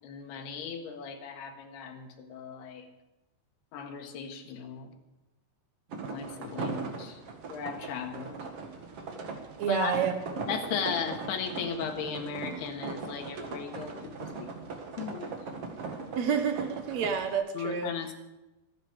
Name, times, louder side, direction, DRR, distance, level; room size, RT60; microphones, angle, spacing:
voice 1, 0.0-2.9 3.7-4.9 6.1-7.2 7.5-8.4 9.7-9.9 10.5-14.5 15.0-15.3 17.5-18.1, left 6 dB, 75° left, 4 dB, 3.6 m, -36 dB
sound 1, 5.9-17.4, right 4 dB, 45° right, 2.1 m, -39 dB
voice 2, 9.6-10.1 16.1-17.9, right 7 dB, 75° right, 7 dB, 1.6 m, -29 dB
25.0 x 9.7 x 5.0 m, 1.0 s
omnidirectional pair, 4.9 m